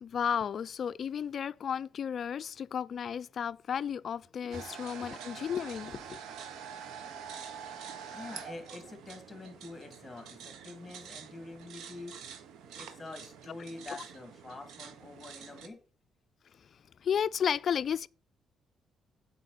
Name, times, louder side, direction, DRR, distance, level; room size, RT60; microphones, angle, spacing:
voice 1, 0.0-6.2 17.0-18.1, left 8 dB, 55° left, 0.3 m, -33 dB
sound 1, 4.5-15.7, right 7 dB, 80° right, 1.2 m, -46 dB
voice 2, 8.1-12.2 12.8-15.8, left 2 dB, 15° left, 2.6 m, -46 dB
8.2 x 5.0 x 6.8 m
cardioid pair, 90°, 0 cm